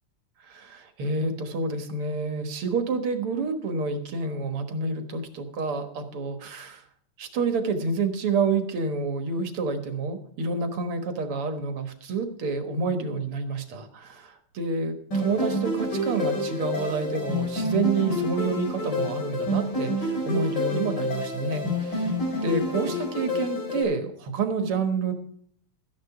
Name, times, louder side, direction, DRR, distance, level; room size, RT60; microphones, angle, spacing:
voice 1, 0.4-6.8 7.2-22.1 22.4-25.1, right 4 dB, 80° right, 7 dB, 2.3 m, -28 dB
sound 1, 15.1-23.8, left 1 dB, 50° left, 4.8 m, -28 dB
14.0 x 10.5 x 4.8 m, 0.64 s
omnidirectional pair, 2.4 m